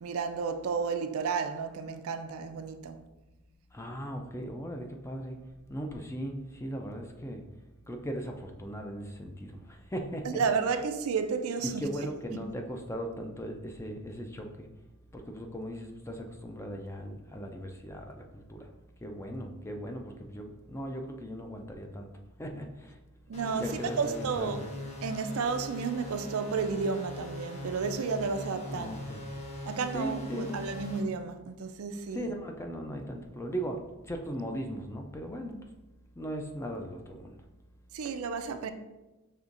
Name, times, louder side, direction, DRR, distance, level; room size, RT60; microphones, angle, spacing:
voice 1, 0.0-3.0 10.2-11.8 23.3-24.6 25.0-29.0 29.7-32.3 37.9-38.7, right 5 dB, 75° right, 0.4 m, -32 dB
voice 2, 3.7-7.4 7.9-10.4 11.6-14.7 15.1-18.7 19.0-22.1 22.4-23.0 23.5-24.6 28.7-29.2 29.9-30.6 32.1-35.7 36.2-37.4 38.0-38.2, equal, 10° left, 0.4 m, -38 dB
sound 1, 23.3-31.0, left 1 dB, 30° left, 0.8 m, -41 dB
5.5 x 3.4 x 2.5 m
head